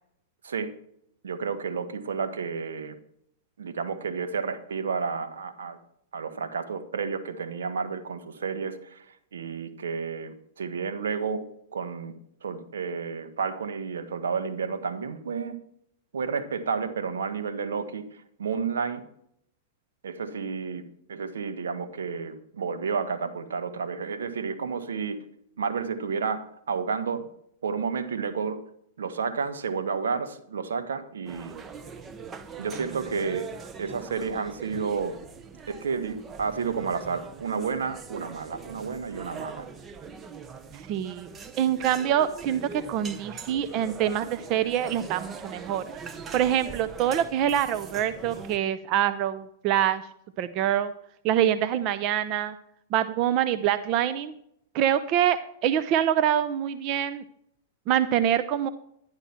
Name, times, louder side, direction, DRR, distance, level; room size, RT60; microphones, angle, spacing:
voice 1, 1.2-3.0 3.6-5.8 6.1-11.4 11.7-12.1 12.4-15.6 16.1-19.0 20.0-20.8 21.1-25.2 25.6-27.3 27.6-28.6 29.0-31.6 32.6-33.5 33.8-35.2 35.7-39.7, right 5 dB, 85° right, 9 dB, 1.4 m, -31 dB
sound 1, 31.2-48.6, right 5 dB, 25° right, 1.0 m, -42 dB
voice 2, 40.7-41.3 41.6-46.0 46.3-50.0 50.4-50.9 51.2-52.6 52.9-54.3 54.7-57.2 57.9-58.7, right 10 dB, 45° right, 12 dB, 0.7 m, -25 dB
11.0 x 11.0 x 4.4 m, 0.71 s
hypercardioid pair, 115°, 0 cm